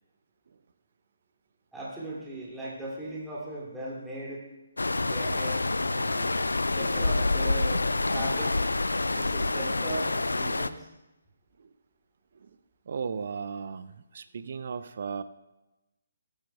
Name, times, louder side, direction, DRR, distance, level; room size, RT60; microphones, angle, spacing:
voice 1, 1.7-4.4 5.0-5.6 5.9-6.3 6.8-8.6 9.1-10.9, right 1 dB, 5° right, -8 dB, 2.4 m, -38 dB
sound 1, 4.8-10.7, left 2 dB, 70° left, 0.4 m, -27 dB
voice 2, 12.9-15.2, right 6 dB, 45° right, 12 dB, 0.5 m, -36 dB
16.0 x 8.8 x 2.2 m, 0.99 s
figure-of-eight pair, 140°, 0 cm